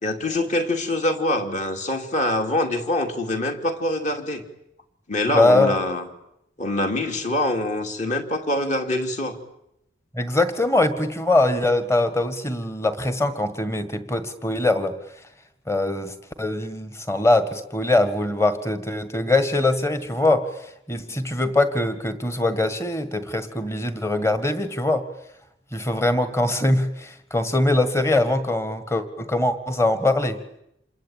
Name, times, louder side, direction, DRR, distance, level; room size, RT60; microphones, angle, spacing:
voice 1, 0.0-4.4 5.1-6.0 6.6-9.4, left 1 dB, 35° left, 5 dB, 2.9 m, -24 dB
voice 2, 5.3-5.8 10.1-14.9 15.7-20.5 20.9-25.1 25.7-30.4, left 2 dB, 15° left, 10 dB, 1.8 m, -22 dB
28.0 x 22.5 x 9.1 m, 0.81 s
head